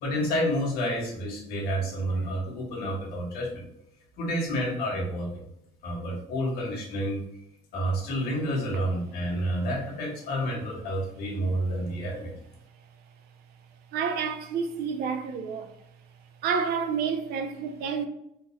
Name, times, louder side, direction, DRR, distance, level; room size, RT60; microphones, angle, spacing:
voice 1, 0.0-3.6 4.2-5.4 5.8-7.2 7.7-12.3, equal, 75° left, 1.2 m, -29 dB
voice 2, 13.9-15.7 16.4-18.1, right 6 dB, 75° right, 0.5 m, -29 dB
3.7 x 2.3 x 3.0 m
cardioid pair, 100°, 16 cm